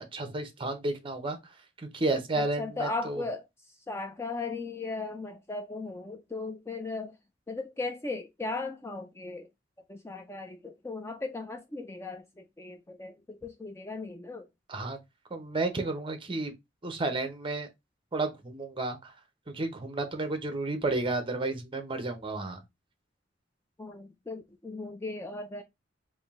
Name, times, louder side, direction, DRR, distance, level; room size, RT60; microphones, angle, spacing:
voice 1, 0.0-3.2 14.7-15.0 15.3-16.5 16.8-17.7 18.1-19.1 19.5-22.6, right 2 dB, 25° right, 0.8 m, -32 dB
voice 2, 2.3-7.1 7.5-9.5 9.9-14.5 23.8-25.6, left 3 dB, 15° left, 0.3 m, -37 dB
3.6 x 2.6 x 3.6 m
head